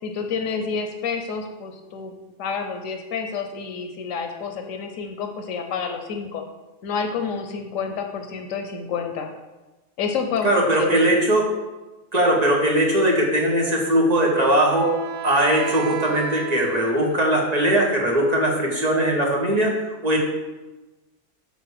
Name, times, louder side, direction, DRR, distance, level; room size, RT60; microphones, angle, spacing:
voice 1, 0.0-2.1 2.4-6.4 6.8-9.3 10.0-11.2, left 5 dB, 85° left, 5 dB, 1.1 m, -29 dB
voice 2, 10.4-11.4 12.1-14.9 15.2-19.7 20.0-20.2, right 1 dB, 30° right, -2 dB, 1.6 m, -20 dB
Wind instrument woodwind instrument, 13.8-17.5, right 7 dB, 90° right, 1.0 m, -35 dB
6.8 x 4.0 x 6.5 m, 1.1 s
omnidirectional pair, 1.3 m